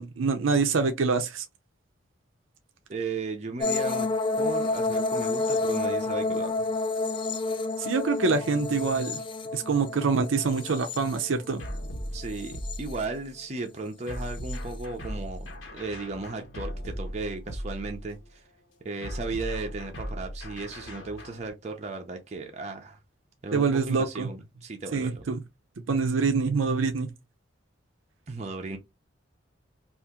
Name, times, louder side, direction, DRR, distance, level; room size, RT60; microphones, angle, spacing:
voice 1, 0.0-1.4 7.8-9.2 9.5-11.6 23.5-24.3 24.9-25.4 25.9-27.1, right 4 dB, 85° right, 0.5 m, -25 dB
voice 2, 2.9-4.1 4.4-6.7 12.1-18.4 18.8-23.0 23.4-25.3 28.3-28.8, right 3 dB, 35° right, 0.5 m, -36 dB
sound 1, 3.6-11.8 12.2-13.0 14.3-14.6, left 3 dB, 25° left, 0.3 m, -29 dB
sound 2, 11.6-13.3 14.1-18.2 19.0-21.5, equal, 90° left, 1.2 m, -37 dB
2.8 x 2.5 x 3.5 m
head